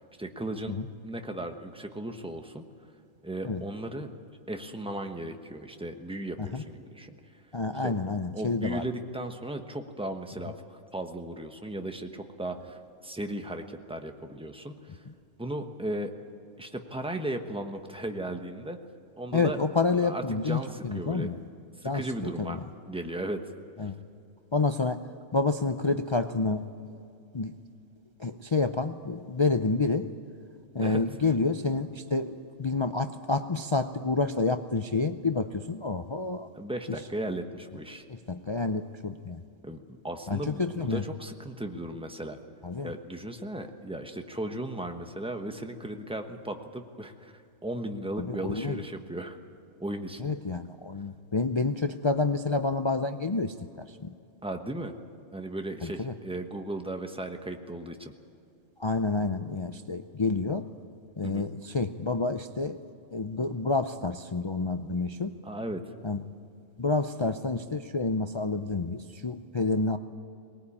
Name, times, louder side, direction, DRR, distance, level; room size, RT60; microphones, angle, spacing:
voice 1, 0.0-0.8 1.0-2.6 3.2-4.1 4.5-7.1 7.8-7.9 8.3-15.0 15.4-16.1 16.6-18.8 19.2-19.6 20.0-21.3 21.8-22.6 22.9-23.4 23.8-23.9 30.8-31.1 36.5-38.0 39.6-42.4 42.8-49.4 49.8-50.3 54.4-54.9 55.3-58.1 61.2-61.5 65.4-65.8, right 1 dB, 5° right, 5 dB, 1.1 m, -36 dB
voice 2, 7.5-8.8 19.3-21.4 21.8-22.6 23.8-24.0 24.5-25.0 25.3-26.6 27.3-27.5 28.2-30.1 30.7-36.5 36.9-37.0 38.1-39.4 40.3-41.0 42.6-42.9 48.2-48.8 50.2-54.1 55.8-56.1 58.8-60.6 61.2-62.8 63.1-65.3 66.0-66.2 66.8-70.0, left 3 dB, 40° left, 8 dB, 0.4 m, -29 dB
20.0 x 19.0 x 8.6 m, 2.6 s
omnidirectional pair, 1.3 m